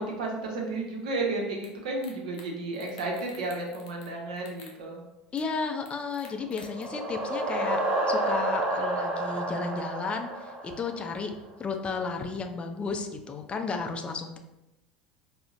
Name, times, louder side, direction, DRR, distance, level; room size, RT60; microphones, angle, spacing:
voice 1, 0.0-5.0, right 2 dB, 75° right, 0 dB, 0.7 m, -32 dB
sound 1, 1.6-1.7 2.0-2.5 2.7-4.1 4.4-4.8 5.4-5.5 5.9-6.8, left 5 dB, 75° left, 0.6 m, -50 dB
voice 2, 5.3-11.3 11.6-14.4, left 4 dB, 30° left, 5 dB, 0.4 m, -33 dB
sound 2, 6.4-11.3, right 1 dB, 35° right, 1.0 m, -30 dB
3.8 x 2.0 x 2.4 m, 0.94 s
hypercardioid pair, 80°, 4 cm